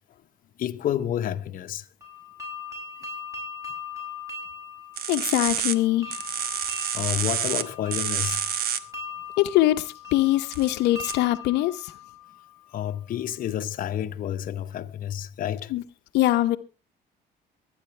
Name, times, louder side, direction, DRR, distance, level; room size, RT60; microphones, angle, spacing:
voice 1, 0.6-1.9 6.9-8.4 12.7-15.7, left 10 dB, 55° left, 0.9 m, -29 dB
sound 1, 2.0-12.8, left 5 dB, 20° right, 6.2 m, -40 dB
sound 2, 5.0-5.7 6.1-7.6 7.9-8.8 10.5-10.7 11.1-11.2, right 9 dB, 65° right, 1.2 m, -28 dB
voice 2, 5.1-6.2 9.4-11.9 15.7-15.8 16.1-16.6, left 15 dB, 85° left, 0.9 m, -22 dB
23.5 x 9.6 x 3.3 m
cardioid pair, 110°, 17 cm